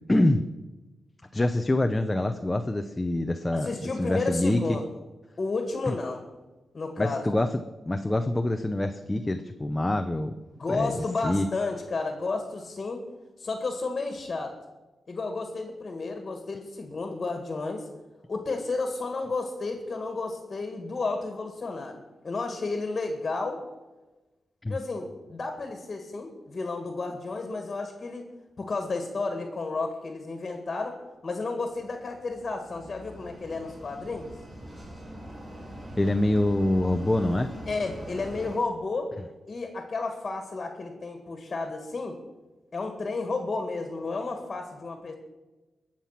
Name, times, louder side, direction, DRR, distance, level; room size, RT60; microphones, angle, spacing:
voice 1, 0.1-0.4 1.3-4.8 7.0-7.5 7.9-10.3 10.7-10.9 11.2-11.5 24.6-24.8 36.0-37.5, left 1 dB, 15° left, 7 dB, 0.6 m, -25 dB
voice 2, 3.5-4.9 5.4-6.3 6.7-7.3 10.5-13.0 13.4-14.6 15.1-17.9 18.3-23.6 24.7-28.2 28.6-34.3 37.7-39.1 39.5-42.2 42.7-45.2, left 3 dB, 35° left, 5 dB, 1.9 m, -32 dB
sound 1, 31.7-38.6, right 1 dB, 25° right, 6.3 m, -42 dB
22.0 x 7.4 x 5.9 m, 1.1 s
wide cardioid pair, 160°, 0 cm